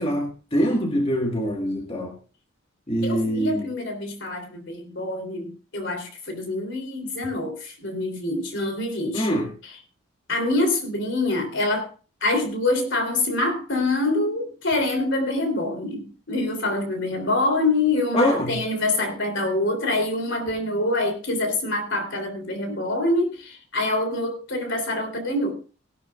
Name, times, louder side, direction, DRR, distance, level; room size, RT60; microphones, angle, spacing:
voice 1, 0.0-2.1 2.9-3.7 9.1-9.5 18.1-18.6, equal, 30° left, 2 dB, 1.6 m, -24 dB
voice 2, 3.0-9.3 10.3-11.9 12.2-25.5, left 2 dB, 60° left, 7 dB, 3.3 m, -25 dB
17.5 x 12.0 x 2.4 m, 0.36 s
head